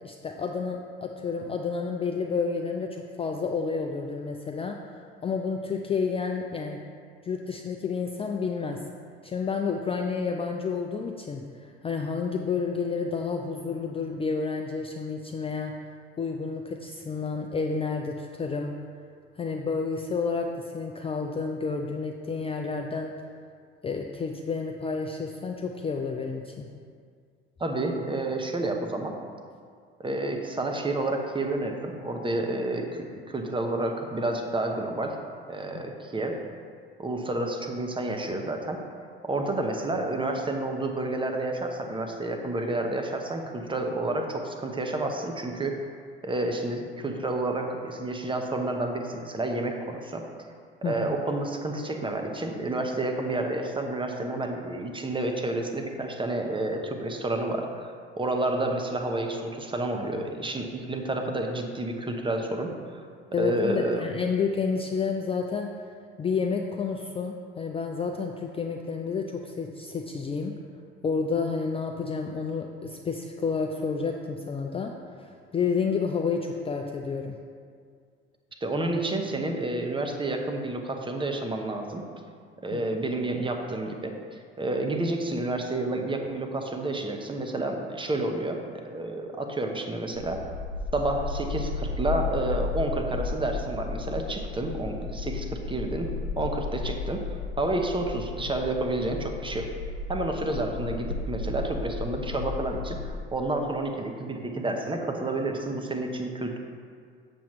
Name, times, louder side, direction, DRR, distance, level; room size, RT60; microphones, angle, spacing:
voice 1, 0.0-6.8 7.2-8.8 9.2-15.7 16.2-18.8 19.4-23.2 23.8-26.7 35.7-35.9 50.8-51.2 63.3-65.7 66.2-70.5 71.0-77.4 82.7-82.8, left 5 dB, 20° left, 2 dB, 0.4 m, -30 dB
voice 2, 27.6-29.2 30.0-35.2 35.5-36.4 37.0-38.8 39.2-45.8 46.2-50.3 50.8-63.0 63.4-64.0 78.6-82.0 82.6-90.4 90.9-97.2 97.6-99.7 100.1-106.6, right 2 dB, 15° right, 3 dB, 0.9 m, -30 dB
sound 1, 90.1-103.1, left 4 dB, 80° right, 1.7 m, -34 dB
7.2 x 7.0 x 3.1 m, 2.1 s
figure-of-eight pair, 60°, 30 cm